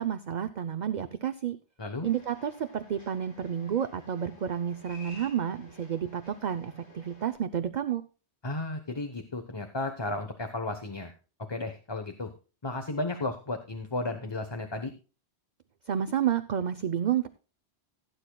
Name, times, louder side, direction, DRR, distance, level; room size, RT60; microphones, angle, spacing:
voice 1, 0.0-1.6 2.0-8.0 15.9-17.3, right 9 dB, 50° right, 10 dB, 0.7 m, -30 dB
sound 1, 2.0-7.3, left 2 dB, 85° left, 4.0 m, -53 dB
voice 2, 8.4-11.1 11.5-12.3 12.6-14.9, left 2 dB, 25° left, 7 dB, 1.0 m, -34 dB
16.5 x 9.1 x 2.3 m, 0.34 s
omnidirectional pair, 1.2 m